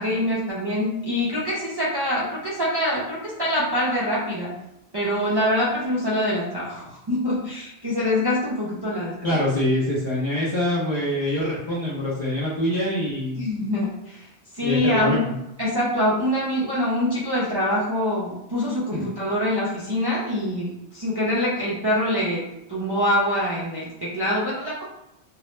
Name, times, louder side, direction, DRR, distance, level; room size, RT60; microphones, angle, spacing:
voice 1, 0.0-4.5 4.9-9.4 13.4-14.2 14.6-15.2 15.6-22.4 22.7-24.8, left 1 dB, 40° right, -7 dB, 0.3 m, -24 dB
voice 2, 9.2-13.4 14.6-15.3 18.9-19.1, left 1 dB, 45° left, -8 dB, 0.3 m, -25 dB
2.2 x 2.0 x 3.0 m, 0.86 s
omnidirectional pair, 1.1 m